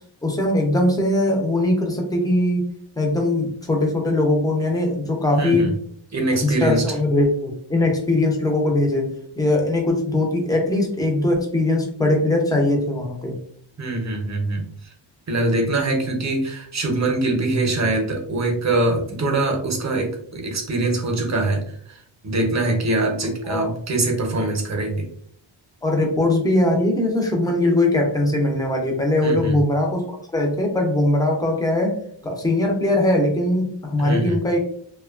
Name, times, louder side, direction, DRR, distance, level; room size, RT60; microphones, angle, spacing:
voice 1, 0.2-2.6 3.0-5.7 6.4-13.3 23.4-23.7 25.8-32.0 32.2-34.6, left 1 dB, 10° left, 1 dB, 0.4 m, -21 dB
voice 2, 5.4-5.7 6.1-6.8 13.8-14.6 15.3-21.6 22.2-25.1 29.2-29.6 34.0-34.4, right 2 dB, 35° right, 3 dB, 0.6 m, -23 dB
2.9 x 2.2 x 2.3 m, 0.63 s
wide cardioid pair, 165°, 48 cm